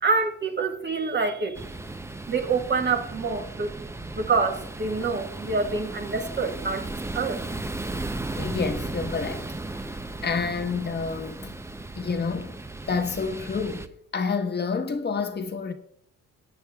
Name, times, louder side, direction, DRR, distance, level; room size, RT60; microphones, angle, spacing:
voice 1, 0.0-1.6 2.3-3.7 4.1-7.4, right 4 dB, 35° right, 1.7 m, -26 dB
sound 1, 1.5-13.9, right 2 dB, 10° right, 0.6 m, -36 dB
voice 2, 8.4-9.5 10.0-11.5 12.0-12.6 12.9-15.7, left 5 dB, 35° left, 1.2 m, -29 dB
21.5 x 8.7 x 2.3 m
cardioid pair, 90°, 30 cm